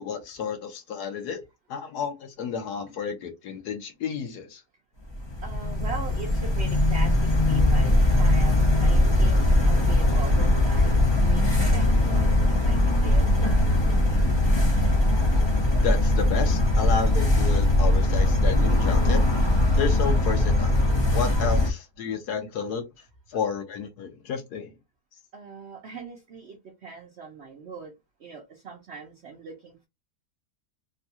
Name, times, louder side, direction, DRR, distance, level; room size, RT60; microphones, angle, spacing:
voice 1, 0.0-1.4 1.7-4.6 15.8-19.2 19.8-20.7 21.1-22.8 23.3-24.7, left 6 dB, 70° left, 1.4 m, -31 dB
sound 1, 5.1-21.7, left 1 dB, 40° left, 0.4 m, -21 dB
voice 2, 5.4-14.2 25.3-27.9 28.2-29.9, right 4 dB, 60° right, 0.7 m, -41 dB
3.7 x 2.3 x 2.8 m
omnidirectional pair, 1.8 m